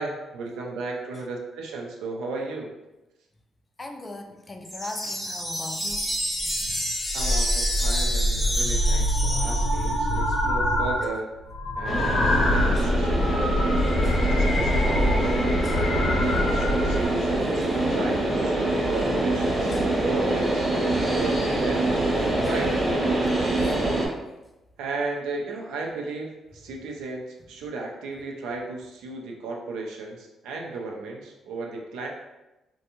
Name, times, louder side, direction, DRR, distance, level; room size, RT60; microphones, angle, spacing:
voice 1, 0.0-2.7 7.1-11.3 11.8-15.4 15.9-20.7 21.1-22.8 24.8-32.1, right 3 dB, 90° right, 0 dB, 0.5 m, -35 dB
voice 2, 3.8-6.1 6.4-6.8 7.2-7.3 8.6-8.7 12.4-12.9 14.0-14.2 15.6-15.9 17.5-17.7 19.7-19.9 22.4-22.5 23.6-23.9, left 2 dB, 25° left, 4 dB, 0.3 m, -40 dB
sound 1, 4.6-10.1, equal, ahead, 0.7 m, -29 dB
sound 2, 5.9-6.0 6.4-6.7 7.0-11.1 11.4-17.1, left 1 dB, 65° left, 0.8 m, -24 dB
sound 3, 11.8-24.1, right 2 dB, 25° right, 1.0 m, -25 dB
2.6 x 2.2 x 2.9 m, 1.0 s
cardioid pair, 90°, 0 cm